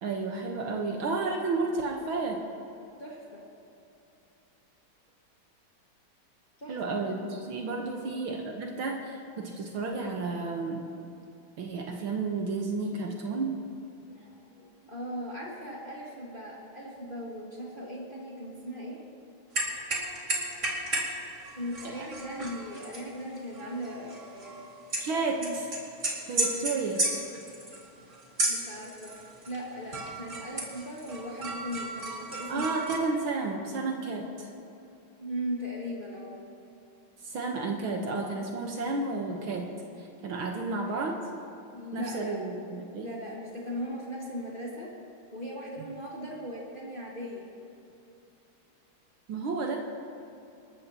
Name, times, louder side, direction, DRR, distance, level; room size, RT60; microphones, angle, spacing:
voice 1, 0.0-2.4 6.7-10.8 11.6-13.6 21.8-22.1 25.0-25.7 26.3-27.3 32.5-34.5 37.2-39.7 40.0-41.2 41.9-43.1 49.3-49.8, right 3 dB, 75° right, 1 dB, 2.0 m, -32 dB
voice 2, 3.0-3.4 6.6-6.9 8.0-8.3 13.9-19.0 21.5-24.7 25.4-25.6 28.5-29.1 29.5-32.7 35.2-36.4 41.7-42.4 43.0-44.9 45.3-47.5, equal, 25° left, -4 dB, 1.8 m, -38 dB
sound 1, 19.5-21.1 21.4-25.1 25.4-29.6 29.9-33.0, right 2 dB, 35° right, 2.6 m, -33 dB
27.0 x 13.5 x 3.0 m, 2.8 s
omnidirectional pair, 2.3 m